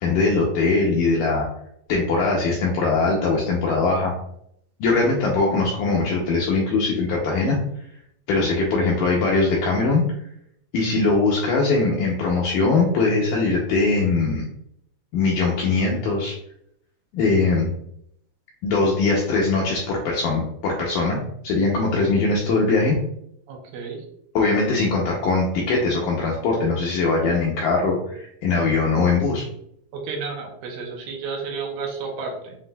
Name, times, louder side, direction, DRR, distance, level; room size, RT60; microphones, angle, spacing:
voice 1, 0.0-1.5 1.9-4.1 4.8-7.6 8.3-10.0 10.7-14.4 15.1-16.3 17.1-17.7 18.6-23.0 24.3-29.5, left 3 dB, 85° left, -2 dB, 1.8 m, -21 dB
voice 2, 23.5-24.0 29.9-32.6, right 4 dB, 75° right, 0 dB, 2.0 m, -32 dB
7.4 x 2.6 x 2.2 m, 0.72 s
omnidirectional pair, 4.4 m